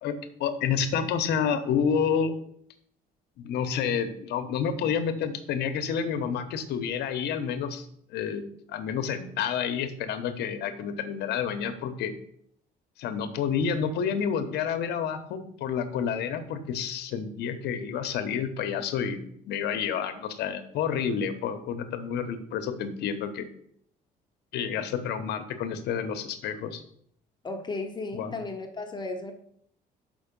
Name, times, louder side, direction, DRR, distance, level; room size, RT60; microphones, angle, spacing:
voice 1, 0.0-2.3 3.4-12.1 13.0-23.5 24.5-26.8 28.1-28.3, left 7 dB, 75° left, 9 dB, 1.0 m, -29 dB
voice 2, 27.4-29.3, left 3 dB, 25° left, 4 dB, 0.9 m, -34 dB
6.2 x 5.3 x 5.3 m, 0.66 s
cardioid pair, 110°, 17 cm